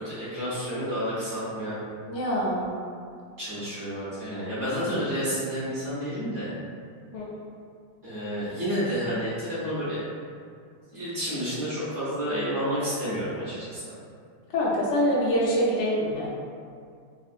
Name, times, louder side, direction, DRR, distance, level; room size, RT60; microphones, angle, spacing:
voice 1, 0.0-1.8 3.4-6.5 8.0-10.0 10.9-13.9, equal, 45° right, -12 dB, 1.1 m, -30 dB
voice 2, 2.1-2.6 7.1-7.2 14.5-16.3, equal, 70° left, -7 dB, 1.2 m, -24 dB
3.5 x 2.3 x 2.4 m, 2.3 s
omnidirectional pair, 2.2 m